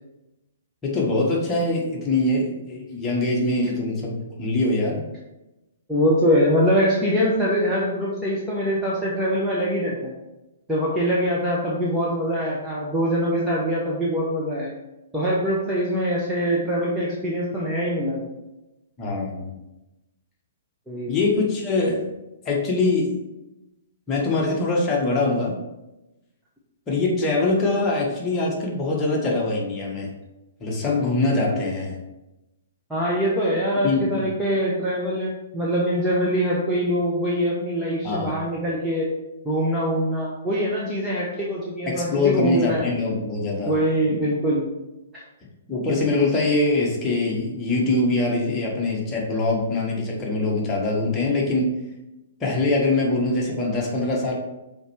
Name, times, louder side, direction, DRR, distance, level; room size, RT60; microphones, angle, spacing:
voice 1, 0.8-5.0 19.0-19.5 21.1-22.1 22.4-23.1 24.1-25.5 26.9-30.1 30.6-31.9 33.8-34.2 38.0-38.3 41.9-43.7 45.7-51.8 52.4-54.3, left 2 dB, 15° left, -3 dB, 1.6 m, -23 dB
voice 2, 5.9-10.1 10.7-14.7 15.1-18.3 20.9-21.1 32.9-39.1 39.4-42.9 43.7-44.6 45.1-45.2, equal, 5° right, -7 dB, 1.1 m, -23 dB
5.7 x 4.6 x 4.5 m, 0.97 s
figure-of-eight pair, 120°, 0 cm